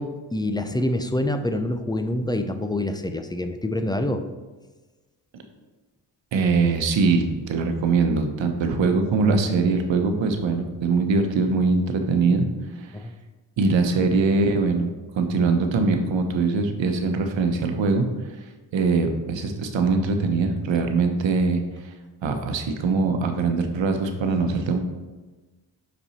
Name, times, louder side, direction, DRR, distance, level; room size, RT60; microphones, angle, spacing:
voice 1, 0.0-4.2 12.9-13.1, left 1 dB, 10° left, 8 dB, 0.6 m, -26 dB
voice 2, 6.3-12.5 12.8-12.9 13.6-14.9 15.1-18.0 18.7-21.9 22.2-24.8, right 4 dB, 70° right, 6 dB, 1.0 m, -22 dB
5.5 x 5.4 x 4.3 m, 1.2 s
supercardioid pair, 50°, 47 cm